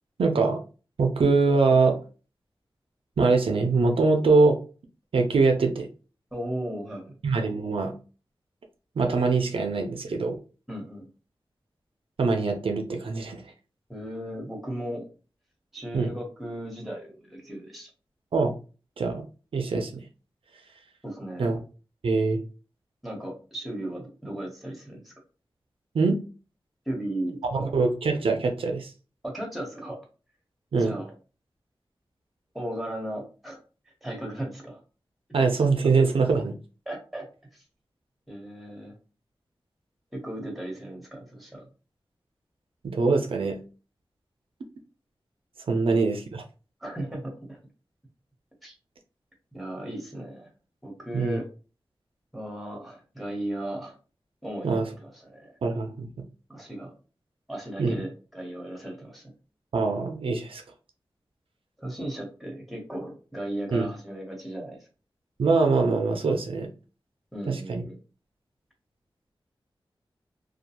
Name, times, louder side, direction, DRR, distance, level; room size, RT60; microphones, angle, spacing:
voice 1, 0.2-0.6 1.0-2.0 3.2-4.6 5.1-5.9 7.2-7.9 9.0-10.4 12.2-13.4 15.9-16.1 18.3-18.5 19.0-19.2 19.5-20.0 21.4-21.6 22.0-22.4 25.9-26.2 27.5-28.9 30.7-30.9 35.3-36.5 42.8-43.6 45.7-46.4 51.1-51.4 54.6-54.9 55.6-56.1 57.8-58.0 59.7-60.6 63.7-63.9 65.4-66.7 67.5-67.8, right 4 dB, 80° right, 4 dB, 0.4 m, -23 dB
voice 2, 6.3-7.2 10.7-11.1 13.9-15.0 15.7-17.9 21.0-21.6 23.0-25.1 26.9-27.7 29.2-30.0 30.8-31.1 32.5-33.6 34.0-34.8 36.9-37.3 37.5-37.6 38.3-39.0 40.1-41.7 46.8-47.6 48.6-48.7 49.5-50.5 50.8-51.4 52.3-54.0 54.4-55.6 56.5-56.9 57.5-59.3 61.8-64.9 67.3-68.0, right 1 dB, ahead, 0 dB, 1.0 m, -36 dB
2.3 x 2.2 x 2.8 m, 0.35 s
wide cardioid pair, 95°, 9 cm